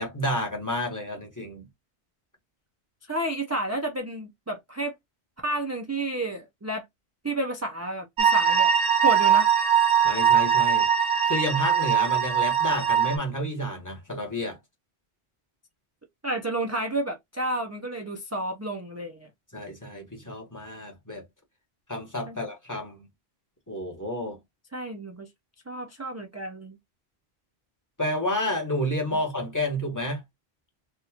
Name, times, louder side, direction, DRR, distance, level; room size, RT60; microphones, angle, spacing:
voice 1, 0.0-1.7 10.0-10.9 11.2-14.6 19.5-21.2 21.9-23.1 23.7-24.4 28.0-30.2, equal, 15° left, 1.3 m, -30 dB
voice 2, 3.1-4.9 5.4-6.8 7.2-8.7 9.0-9.5 16.2-19.3 22.3-22.4 24.7-25.3 25.7-26.8 29.1-29.2, right 1 dB, 20° right, 0.4 m, -31 dB
sound 1, 8.2-13.2, right 8 dB, 55° right, 0.9 m, -21 dB
3.9 x 2.4 x 2.8 m
omnidirectional pair, 1.1 m